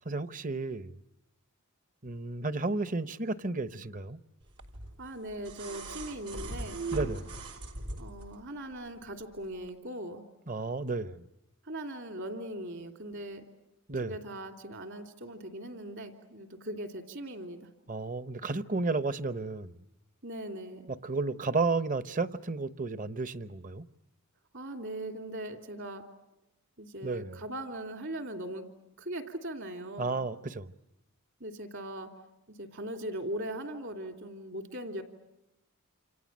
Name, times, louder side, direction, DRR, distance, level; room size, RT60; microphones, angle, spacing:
voice 1, 0.0-0.9 2.0-4.2 6.9-7.3 10.5-11.2 13.9-14.2 17.9-19.7 20.9-23.8 27.0-27.3 30.0-30.7, right 3 dB, 35° right, 0.9 m, -32 dB
sound 1, 4.6-8.4 9.6-9.7, right 2 dB, 85° right, 3.6 m, -39 dB
voice 2, 5.0-6.8 8.0-10.2 11.7-13.5 14.0-17.7 20.2-20.8 24.5-26.0 26.8-28.7 29.0-30.2 31.4-32.1 32.5-35.0, right 1 dB, 55° right, 3.0 m, -40 dB
28.5 x 28.0 x 7.4 m
head